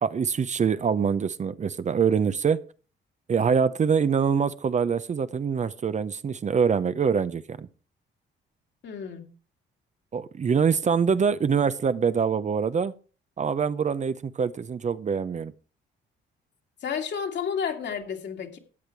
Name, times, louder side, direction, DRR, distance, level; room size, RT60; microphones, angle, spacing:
voice 1, 0.0-2.6 3.3-7.7 10.1-12.9 13.4-15.5, right 6 dB, 35° right, 0.7 m, -24 dB
voice 2, 8.8-9.3 16.8-18.6, left 7 dB, 60° left, 2.5 m, -31 dB
13.5 x 8.7 x 4.6 m
cardioid pair, 90°, 20 cm